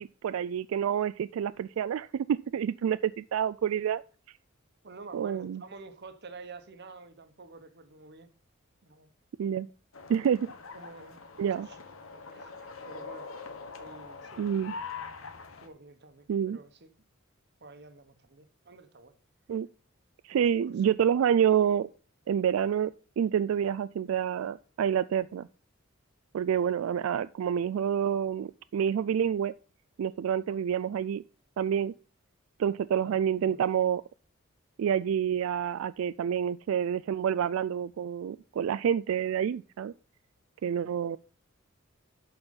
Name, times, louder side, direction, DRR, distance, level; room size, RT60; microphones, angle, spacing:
voice 1, 0.0-4.0 5.1-5.6 9.4-9.7 10.1-10.5 11.4-11.7 14.4-14.7 16.3-16.6 19.5-19.7 20.2-21.9 22.3-25.5 26.3-29.5 30.0-31.2 31.6-31.9 32.6-34.0 34.8-39.9 40.6-41.2, right 8 dB, 90° right, 0.3 m, -28 dB
voice 2, 4.8-8.3 8.8-9.1 10.7-11.8 12.3-13.3 13.7-14.5 15.6-16.9 17.6-19.1 20.3-20.8 30.5-30.6 32.9-33.7 40.6-40.8, right 3 dB, 55° right, 1.1 m, -49 dB
sound 1, 9.9-15.7, left 4 dB, 80° left, 1.2 m, -43 dB
11.5 x 4.5 x 5.4 m
head